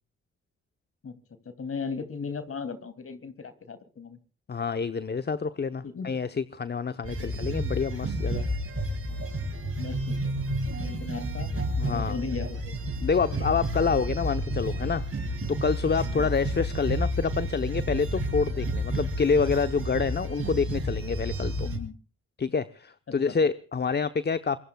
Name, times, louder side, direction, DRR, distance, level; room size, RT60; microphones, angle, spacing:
voice 1, 1.4-4.2 5.8-6.1 7.2-7.4 9.8-10.3 10.8-11.6 11.9-12.7 16.0-16.3 21.6-21.9 23.1-23.4, left 5 dB, 50° left, 10 dB, 2.9 m, -37 dB
voice 2, 4.5-8.5 11.8-12.2 13.0-15.0 15.5-21.7 22.4-24.6, left 5 dB, 35° left, 11 dB, 1.0 m, -27 dB
sound 1, 7.0-21.8, equal, 50° right, 7.1 m, -31 dB
26.0 x 22.5 x 2.4 m, 0.39 s
supercardioid pair, 60°, 29 cm